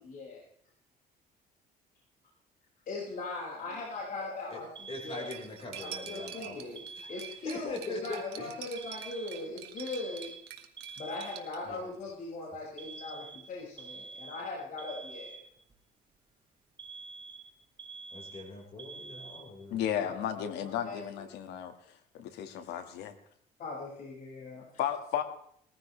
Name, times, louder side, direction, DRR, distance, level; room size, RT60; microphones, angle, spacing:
voice 1, 0.0-0.4 2.9-5.3 5.8-6.8 7.1-10.3 11.0-15.4 20.0-20.4 20.8-21.2 23.6-24.8, left 3 dB, 55° left, -5 dB, 6.3 m, -40 dB
Alarm, 4.8-7.7 8.8-11.7 12.8-15.8 16.8-19.8, right 4 dB, 30° right, 1.2 m, -47 dB
voice 2, 4.9-6.8 7.4-8.5 11.6-11.9 18.1-19.8, left 2 dB, 35° left, -1 dB, 5.2 m, -42 dB
Cutlery silverware, 5.3-11.6, right 12 dB, 80° right, 1.7 m, -47 dB
voice 3, 19.7-21.7 22.1-23.1 24.8-25.2, left 9 dB, 80° left, 8 dB, 2.0 m, -34 dB
20.5 x 14.5 x 3.4 m, 0.69 s
cardioid pair, 110°, 17 cm